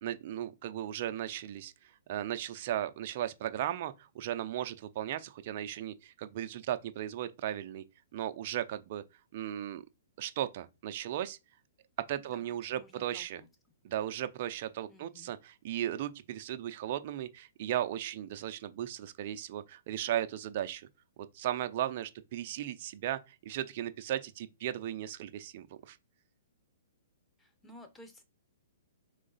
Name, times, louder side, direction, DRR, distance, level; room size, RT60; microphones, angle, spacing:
voice 1, 0.0-1.7 2.1-7.8 8.1-9.0 9.3-9.8 10.2-11.4 12.0-13.4 13.8-20.9 21.2-26.0, right 12 dB, 50° right, 0.5 m, -36 dB
voice 2, 12.2-13.5 14.9-15.3 27.4-28.2, left 1 dB, 10° left, 0.9 m, -55 dB
3.7 x 3.2 x 4.0 m
hypercardioid pair, 125°, 0 cm